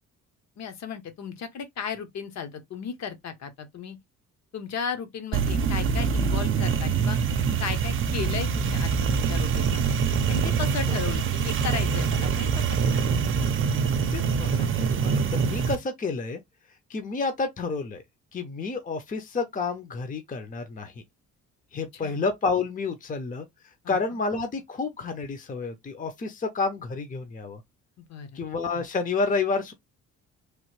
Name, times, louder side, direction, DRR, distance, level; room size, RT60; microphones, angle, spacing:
voice 1, 0.6-4.0 4.5-7.2 7.6-10.0 10.3-13.2 21.9-22.2 23.8-24.0 28.1-28.4, left 6 dB, 60° left, 0.9 m, -35 dB
sound 1, 5.3-15.8, right 6 dB, 45° right, 0.5 m, -24 dB
voice 2, 14.1-16.4 16.9-18.0 18.3-20.9 21.7-23.5 23.9-27.6 28.3-29.7, left 4 dB, 25° left, 0.6 m, -30 dB
3.1 x 2.1 x 3.1 m
cardioid pair, 90°, 30 cm